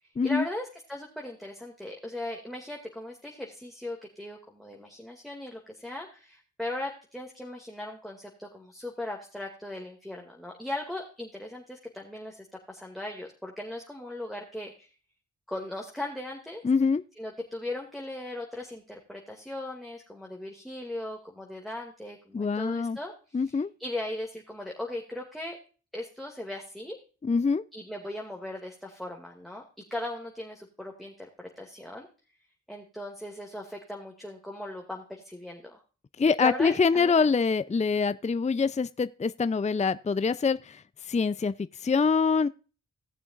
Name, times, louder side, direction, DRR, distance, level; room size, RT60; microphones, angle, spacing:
voice 1, 0.2-14.9 15.5-16.6 17.2-25.6 25.9-27.0 27.7-29.6 29.9-32.1 32.7-35.8 36.4-37.3, left 1 dB, ahead, 2.3 m, -38 dB
voice 2, 16.6-17.0 22.3-23.0 23.3-23.7 27.2-27.6 36.2-42.5, left 5 dB, 25° left, 0.5 m, -25 dB
18.0 x 6.9 x 2.5 m
cardioid pair, 45°, 30 cm